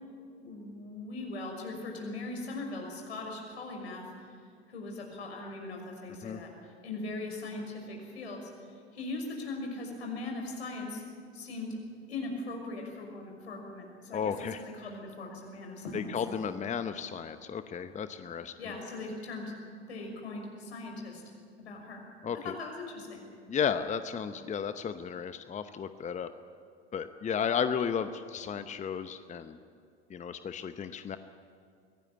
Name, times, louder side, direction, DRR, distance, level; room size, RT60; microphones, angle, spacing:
voice 1, 0.4-4.0 4.7-6.5 6.8-8.4 8.9-11.0 11.3-11.8 12.1-14.3 14.8-16.1 16.6-16.7 18.6-19.4 19.9-21.2 21.6-22.0 22.4-23.2, left 2 dB, 75° left, 1 dB, 6.0 m, -39 dB
voice 2, 14.1-14.6 15.9-18.7 22.2-22.5 23.5-26.3 26.9-29.6 30.1-31.2, left 7 dB, 20° left, 10 dB, 0.9 m, -34 dB
24.0 x 18.0 x 9.0 m, 2.3 s
figure-of-eight pair, 75°, 32 cm